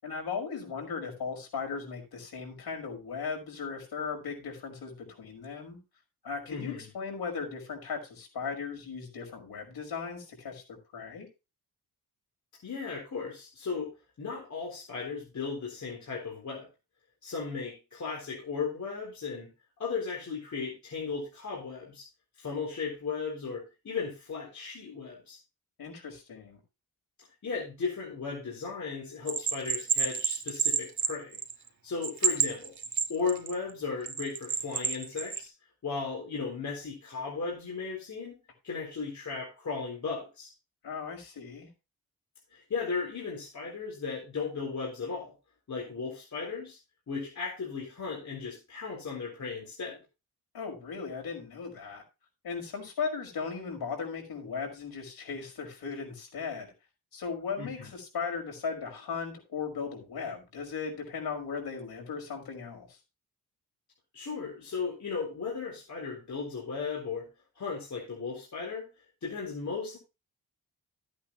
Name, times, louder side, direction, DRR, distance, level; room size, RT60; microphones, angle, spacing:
voice 1, 0.0-5.8 6.2-11.3 25.8-26.6 40.8-41.7 50.5-52.0 52.4-56.7 57.1-63.0, left 5 dB, 80° left, 2 dB, 5.5 m, -37 dB
voice 2, 6.5-6.9 12.6-13.9 14.2-16.7 17.2-19.5 19.8-22.1 22.4-25.4 27.4-31.4 31.8-32.7 33.1-35.5 35.8-38.4 38.6-40.5 42.5-45.3 45.7-46.8 47.1-50.0 57.6-57.9 64.1-67.3 67.6-68.9 69.2-70.0, left 5 dB, 50° left, -2 dB, 4.1 m, -36 dB
Bell, 29.3-31.7 32.0-33.5 34.1-35.4, right 6 dB, 50° right, 1.7 m, -29 dB
14.5 x 8.7 x 3.0 m, 0.28 s
wide cardioid pair, 140°, 37 cm